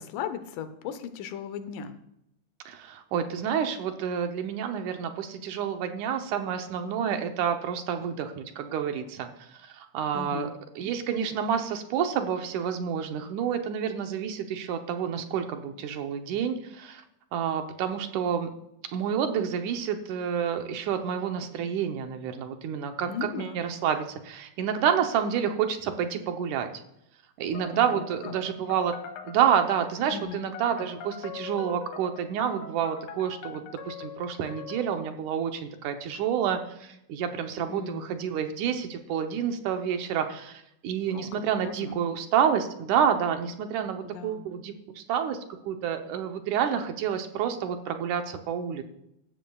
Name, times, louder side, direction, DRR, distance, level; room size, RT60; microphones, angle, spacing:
voice 1, 0.0-2.0 10.1-10.5 23.1-23.6 27.7-28.3 30.1-30.4 37.7-38.1 41.1-41.3 41.6-42.0 44.0-44.5, left 7 dB, 80° left, 10 dB, 2.4 m, -37 dB
voice 2, 2.7-10.5 10.8-17.0 17.3-18.5 18.9-26.7 27.4-28.9 29.2-45.4 45.7-48.8, right 8 dB, 75° right, 6 dB, 2.3 m, -29 dB
sound 1, 27.5-34.9, left 8 dB, 65° left, 1.9 m, -43 dB
15.0 x 12.5 x 2.3 m, 0.80 s
omnidirectional pair, 3.7 m